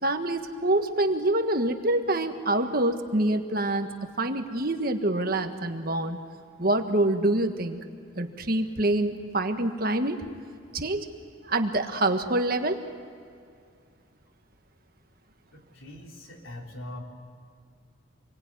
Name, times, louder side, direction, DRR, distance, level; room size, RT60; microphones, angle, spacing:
voice 1, 0.0-3.9 4.2-6.2 6.6-7.8 8.2-10.2 10.7-11.1 11.4-12.8, right 1 dB, 45° right, 6 dB, 1.6 m, -26 dB
voice 2, 15.5-17.0, left 1 dB, 80° left, 0 dB, 4.1 m, -42 dB
27.0 x 22.5 x 9.4 m, 2.3 s
head